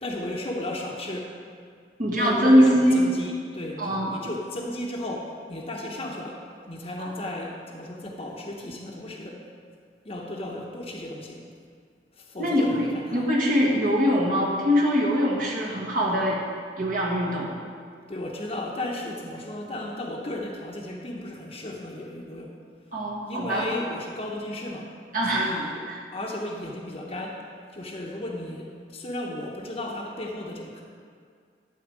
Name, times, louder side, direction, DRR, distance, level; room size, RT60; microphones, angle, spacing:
voice 1, 0.0-1.4 2.1-9.5 10.0-11.4 12.1-13.3 18.1-22.6 23.3-24.9 25.2-25.8 26.1-30.8, left 1 dB, 35° left, -2 dB, 0.9 m, -34 dB
voice 2, 2.0-3.0 3.8-4.1 7.0-7.1 12.4-12.8 13.1-16.4 16.8-17.5 22.9-23.6 25.1-25.5 25.9-26.0, equal, 50° right, -4 dB, 1.4 m, -22 dB
12.5 x 4.3 x 7.4 m, 2.1 s
head